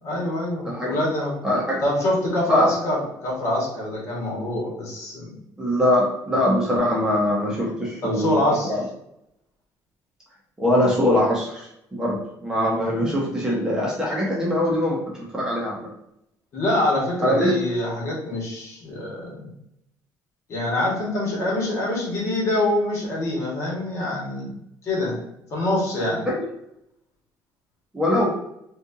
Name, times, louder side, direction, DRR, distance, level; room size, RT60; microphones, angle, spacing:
voice 1, 0.0-1.3 1.8-5.3 8.0-8.7 16.5-19.5 20.5-24.5 24.8-25.2 25.5-26.3, left 1 dB, 45° left, -4 dB, 1.5 m, -25 dB
voice 2, 0.6-1.0 1.4-1.8 2.5-2.7 5.6-8.4 8.7-8.8 10.6-15.0 15.3-15.9 17.2-17.5 27.9-28.2, left 1 dB, 10° right, -5 dB, 0.8 m, -22 dB
4.2 x 2.4 x 2.7 m, 0.78 s
cardioid pair, 150°, 7 cm